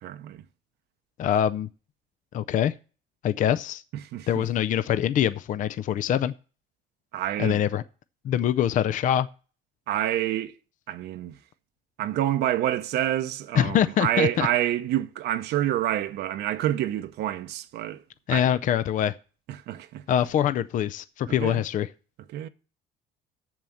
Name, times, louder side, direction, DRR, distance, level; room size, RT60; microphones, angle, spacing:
voice 1, 0.0-0.4 4.1-4.5 7.1-7.6 9.9-10.5 10.9-11.4 12.0-18.0 18.3-18.6 19.5-20.0 21.3-21.6 22.3-22.5, right 12 dB, 75° right, 0.8 m, -28 dB
voice 2, 1.2-1.7 2.3-2.7 3.2-3.8 4.3-6.3 7.4-7.8 8.2-9.3 13.5-14.5 18.3-19.1 20.1-21.9, left 10 dB, 50° left, 0.5 m, -24 dB
7.4 x 7.1 x 7.7 m
cardioid pair, 110°, 17 cm